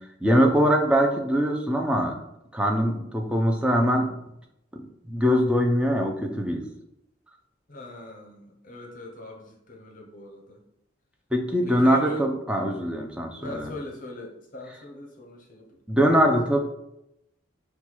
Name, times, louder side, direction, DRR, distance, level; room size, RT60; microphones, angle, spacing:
voice 1, 0.2-2.2 2.5-4.1 4.7-6.6 11.3-13.7 15.9-16.6, equal, 5° right, 2 dB, 0.4 m, -22 dB
voice 2, 7.7-10.6 11.6-12.3 13.4-15.8, left 2 dB, 40° left, 0 dB, 0.8 m, -41 dB
4.1 x 2.3 x 4.5 m, 0.82 s
head